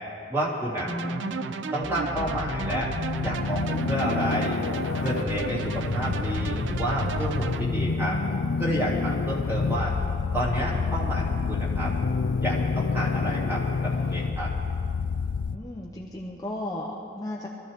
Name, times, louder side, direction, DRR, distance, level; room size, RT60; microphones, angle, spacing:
voice 1, 0.3-0.9 1.7-2.9 3.2-4.5 5.0-8.2 8.6-9.9 10.3-11.9 12.4-14.5, right 1 dB, 15° right, -6 dB, 2.6 m, -30 dB
voice 2, 0.8-1.5 5.7-5.8 9.6-10.1 15.5-17.5, left 1 dB, 20° left, -2 dB, 0.8 m, -36 dB
sound 1, 0.8-7.6, right 5 dB, 80° right, 0.5 m, -34 dB
sound 2, 1.8-15.6, left 4 dB, 85° left, 0.4 m, -28 dB
23.0 x 13.5 x 3.6 m, 2.7 s
head